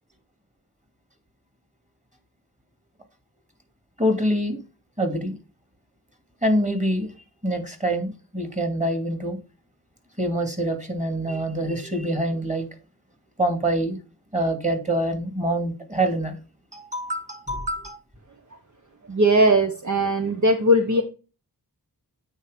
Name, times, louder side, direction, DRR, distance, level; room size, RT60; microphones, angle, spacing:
voice 1, 4.0-4.6 5.0-5.4 6.4-7.1 7.4-9.4 10.2-12.7 13.4-14.0 14.3-16.4 16.7-18.0, right 1 dB, 20° right, 6 dB, 2.5 m, -25 dB
voice 2, 19.1-21.0, right 1 dB, 45° right, 4 dB, 1.1 m, -19 dB
9.0 x 4.4 x 5.1 m, 0.32 s
wide cardioid pair, 70°, 40 cm